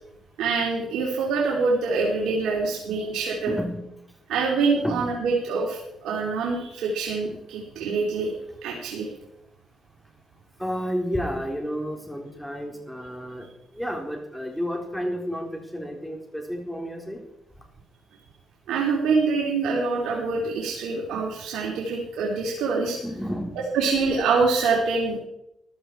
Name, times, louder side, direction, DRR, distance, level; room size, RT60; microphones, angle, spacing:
voice 1, 0.4-3.6 4.3-8.3 8.6-9.1 18.7-23.0 23.7-25.2, right 4 dB, 85° right, -3 dB, 3.0 m, -25 dB
voice 2, 2.1-2.6 3.5-3.8 4.8-5.1 10.6-13.5 13.7-17.2 23.0-23.5, equal, ahead, 2 dB, 3.7 m, -31 dB
15.0 x 12.0 x 4.6 m, 0.81 s
cardioid pair, 90°, 0 cm